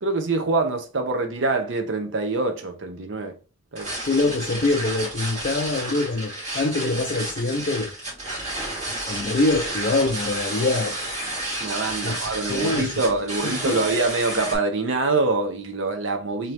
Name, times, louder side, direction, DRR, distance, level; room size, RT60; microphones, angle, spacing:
voice 1, 0.0-3.4 3.7-3.9 11.6-16.5, right 3 dB, 70° right, 0.7 m, -25 dB
sound 1, 3.8-14.6, right 1 dB, 35° right, 2.2 m, -31 dB
voice 2, 4.0-7.9 9.1-11.0 12.0-12.1 12.5-12.9 13.4-13.8, left 2 dB, 45° left, 0.5 m, -24 dB
3.7 x 2.8 x 3.3 m
head